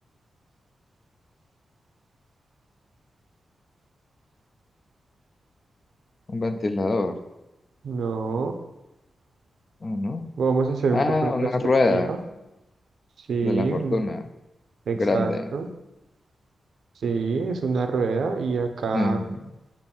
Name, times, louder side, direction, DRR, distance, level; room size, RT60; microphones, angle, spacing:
voice 1, 6.3-7.2 9.8-10.2 10.9-12.1 13.4-14.2 14.9-15.5 18.9-19.5, left 2 dB, 30° left, 8 dB, 0.3 m, -24 dB
voice 2, 7.8-8.6 10.4-11.5 11.9-12.2 13.3-14.0 14.9-15.7 17.0-19.2, right 4 dB, 70° right, 6 dB, 0.6 m, -26 dB
6.9 x 2.6 x 5.3 m, 0.97 s
wide cardioid pair, 170°, 0 cm